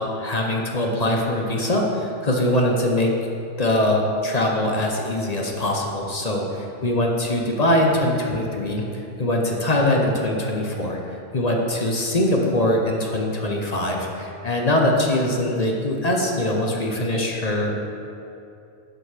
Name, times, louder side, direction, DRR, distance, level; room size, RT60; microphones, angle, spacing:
voice 1, 0.0-3.1 3.6-8.8 9.2-17.8, left 1 dB, 40° left, 0 dB, 0.8 m, -22 dB
9.7 x 5.2 x 4.9 m, 2.7 s
omnidirectional pair, 1.3 m